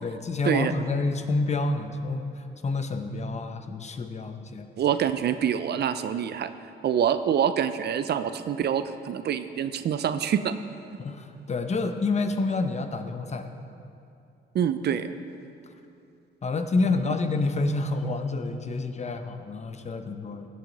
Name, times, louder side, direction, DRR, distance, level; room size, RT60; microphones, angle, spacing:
voice 1, 0.0-4.7 11.0-13.5 16.4-20.5, left 3 dB, 35° left, 7 dB, 0.9 m, -28 dB
voice 2, 4.8-6.5 6.8-10.5 14.5-15.1, right 9 dB, 55° right, 11 dB, 0.5 m, -26 dB
17.0 x 7.8 x 4.0 m, 2.5 s
cardioid pair, 90°, 20 cm